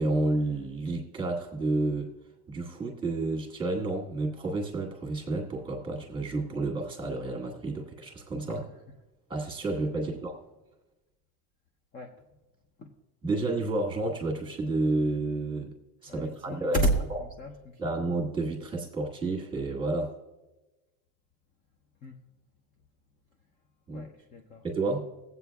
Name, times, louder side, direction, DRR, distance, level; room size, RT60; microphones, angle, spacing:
voice 1, 0.0-2.1 2.5-8.6 9.3-10.4 13.2-15.7 16.0-16.8 17.1-17.2 17.8-20.1 23.9-24.1 24.6-25.1, right 2 dB, 10° right, 1 dB, 1.4 m, -30 dB
voice 2, 16.1-17.9 22.0-22.2 23.9-24.6, right 1 dB, 20° left, 3 dB, 0.4 m, -32 dB
19.5 x 8.1 x 2.3 m, 1.1 s
cardioid pair, 165°, 44 cm